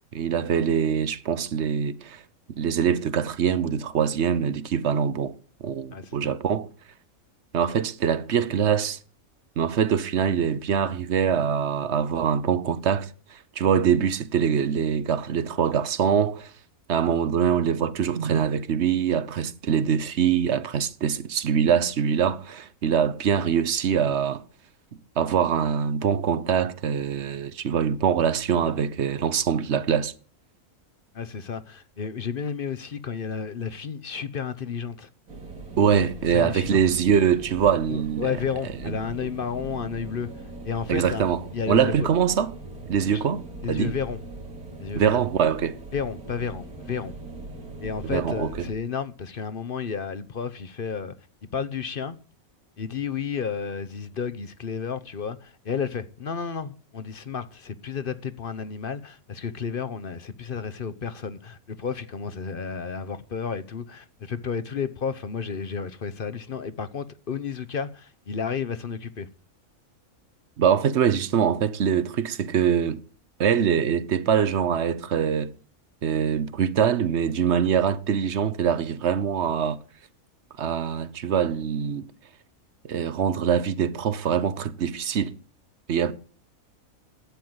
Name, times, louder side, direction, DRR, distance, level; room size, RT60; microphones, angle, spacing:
voice 1, 0.1-2.2 2.6-5.3 5.6-6.7 7.5-9.0 9.6-16.5 16.9-24.4 25.2-30.1 35.8-38.3 38.8-39.0 40.9-42.5 42.9-44.0 44.9-45.8 48.0-48.7 70.6-73.0 73.4-75.5 76.0-79.8 80.6-82.0 82.8-85.3 85.9-86.1, right 8 dB, 55° right, 1.0 m, -24 dB
voice 2, 5.9-6.3 31.1-35.1 35.9-36.8 37.9-40.3 40.6-41.3 41.5-42.1 43.1-43.2 43.6-44.2 44.8-45.2 45.9-47.1 47.8-51.1 51.5-52.2 52.8-69.3, left 6 dB, 45° left, 0.9 m, -32 dB
sound 1, 35.3-48.7, right 2 dB, 85° right, 2.7 m, -40 dB
11.5 x 9.1 x 8.0 m
omnidirectional pair, 1.5 m